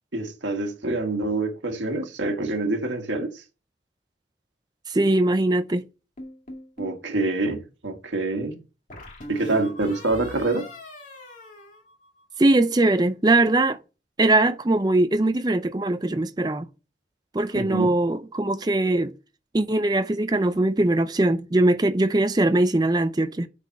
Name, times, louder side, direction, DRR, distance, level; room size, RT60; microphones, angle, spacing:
voice 1, 0.1-3.4 6.8-8.6 9.3-10.7 17.5-17.9, right 2 dB, 85° right, 1.8 m, -26 dB
voice 2, 4.9-5.8 12.4-13.8 14.2-16.7 17.3-19.1 19.5-23.5, right 2 dB, 20° right, 0.5 m, -21 dB
sound 1, 6.2-7.0 8.9-12.5, equal, 45° left, 2.1 m, -41 dB
8.2 x 4.2 x 6.6 m
head